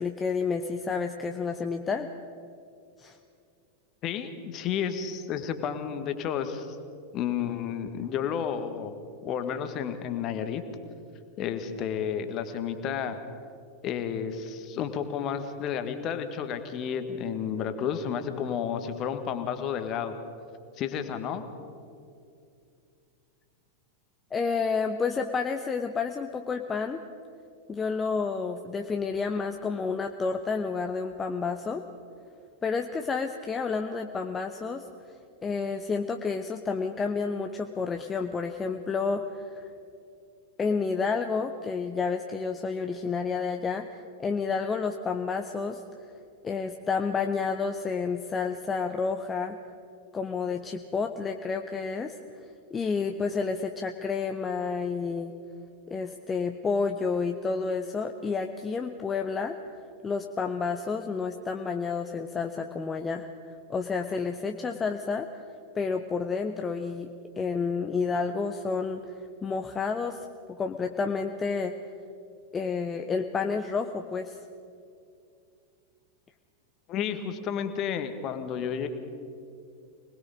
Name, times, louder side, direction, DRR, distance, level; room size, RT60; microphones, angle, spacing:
voice 1, 0.0-2.1 3.0-3.2 24.3-27.0 27.7-31.8 32.6-34.8 35.4-39.7 40.6-45.8 46.4-49.6 50.1-52.2 52.7-55.4 55.9-59.6 60.0-65.3 65.7-67.1 67.4-71.7 72.5-74.4, left 5 dB, 20° left, 5 dB, 0.8 m, -30 dB
voice 2, 4.0-6.8 7.1-8.9 9.2-10.6 11.4-13.2 13.8-20.1 20.8-21.4 76.9-78.9, left 8 dB, 35° left, 8 dB, 1.7 m, -31 dB
25.0 x 20.0 x 5.2 m, 2.4 s
figure-of-eight pair, 90°, 0 cm